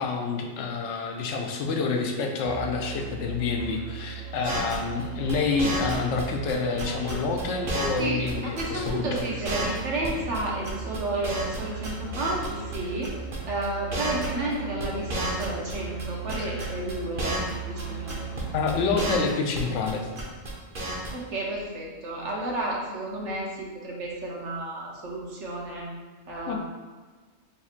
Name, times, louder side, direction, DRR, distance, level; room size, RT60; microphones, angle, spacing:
voice 1, 0.0-9.3 18.5-20.1 26.5-26.6, left 4 dB, 90° left, 2 dB, 0.9 m, -28 dB
Musical instrument, 2.5-18.9, right 6 dB, 30° left, 0.8 m, -38 dB
sound 1, 4.4-6.2 6.5-8.0 8.3-8.4 8.6-8.9 9.1-9.2 9.4-10.4 10.6-11.6 11.8-12.5 12.7-12.8 13.0-13.4 13.6-13.7 13.9-14.5 14.8-16.0 16.3-17.5 17.8-17.9 18.1-18.4 18.7-19.9 20.2-20.5 20.7-21.1, right 1 dB, 55° right, 1.0 m, -31 dB
voice 2, 8.0-13.1 13.5-18.2 21.1-25.9 26.3-26.6, right 1 dB, 85° right, -2 dB, 1.1 m, -32 dB
4.3 x 3.4 x 2.4 m, 1.4 s
omnidirectional pair, 1.2 m